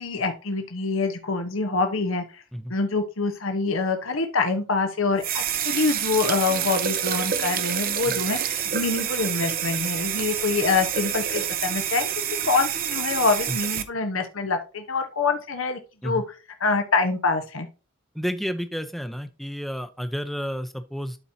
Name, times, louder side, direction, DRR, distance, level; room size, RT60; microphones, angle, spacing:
voice 1, 0.0-2.4 2.7-12.1 12.4-16.2 16.6-17.7, left 4 dB, 75° left, 6 dB, 1.1 m, -25 dB
sound 1, 5.2-13.8, right 9 dB, 45° right, 0.7 m, -28 dB
voice 2, 18.1-21.2, equal, ahead, 8 dB, 0.7 m, -31 dB
12.0 x 4.5 x 2.8 m, 0.33 s
head